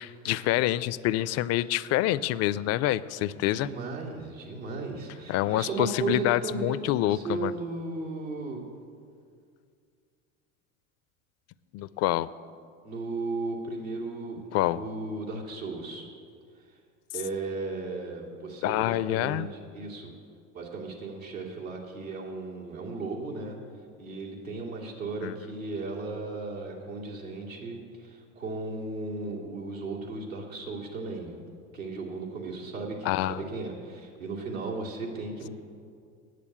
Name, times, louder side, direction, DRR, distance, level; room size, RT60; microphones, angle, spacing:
voice 1, 0.0-3.7 5.3-7.5 11.7-12.3 14.5-14.8 18.6-19.5 25.2-25.3 33.0-33.4, left 14 dB, 40° left, 18 dB, 0.4 m, -27 dB
voice 2, 3.4-8.7 12.8-16.1 17.1-20.1 20.5-23.6 24.0-31.4 31.7-35.5, right 3 dB, 90° right, -2 dB, 2.4 m, -36 dB
9.2 x 8.3 x 8.4 m, 2.2 s
hypercardioid pair, 80°, 39 cm